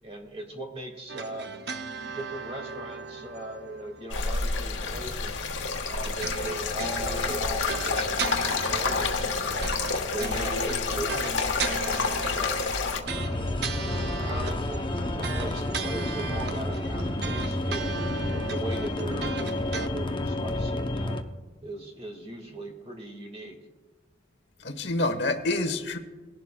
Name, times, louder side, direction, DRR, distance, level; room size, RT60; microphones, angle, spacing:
voice 1, 0.0-1.5 2.0-5.4 5.9-9.7 10.1-12.6 13.1-14.9 15.2-18.0 18.3-21.2 21.6-23.6, right 1 dB, 35° right, 3 dB, 1.8 m, -39 dB
sound 1, 1.1-4.8 6.0-19.9, right 5 dB, 60° right, 0.6 m, -37 dB
sound 2, 4.1-13.0, left 4 dB, 90° left, 1.2 m, -28 dB
voice 2, 10.4-11.0 24.6-26.0, left 2 dB, 70° left, 8 dB, 1.1 m, -29 dB
sound 3, 13.1-21.2, left 1 dB, 25° left, 0.6 m, -30 dB
19.0 x 11.5 x 2.2 m, 1.2 s
head